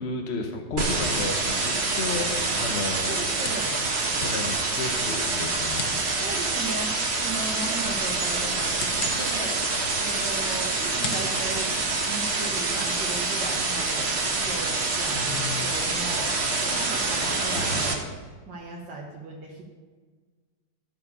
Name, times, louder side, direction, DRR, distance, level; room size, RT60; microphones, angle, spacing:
voice 1, 0.0-3.2 4.2-5.8 15.1-15.6 17.5-17.9, left 3 dB, 45° left, 3 dB, 1.0 m, -33 dB
sound 1, 0.8-17.9, right 3 dB, 40° right, 1.4 m, -26 dB
sound 2, 1.7-12.6, left 4 dB, 65° left, 1.6 m, -43 dB
voice 2, 3.0-3.7 6.2-9.6 10.0-11.7 12.1-14.1 14.4-16.3 16.6-18.0 18.5-19.6, right 2 dB, 80° right, -3 dB, 2.0 m, -37 dB
13.5 x 4.9 x 6.7 m, 1.4 s
omnidirectional pair, 2.0 m